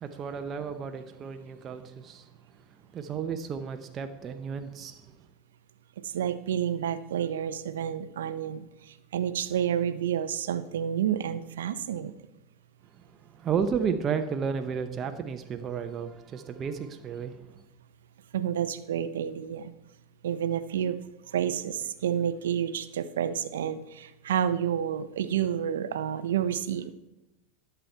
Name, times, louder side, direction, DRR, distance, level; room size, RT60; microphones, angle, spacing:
voice 1, 0.0-2.3 2.9-5.1 13.2-17.6, right 6 dB, 35° right, 7 dB, 0.8 m, -33 dB
voice 2, 6.0-12.1 18.3-19.7 20.2-21.0 21.3-26.9, right 9 dB, 80° right, 14 dB, 0.6 m, -29 dB
11.5 x 7.0 x 4.5 m, 0.96 s
hypercardioid pair, 90°, 0 cm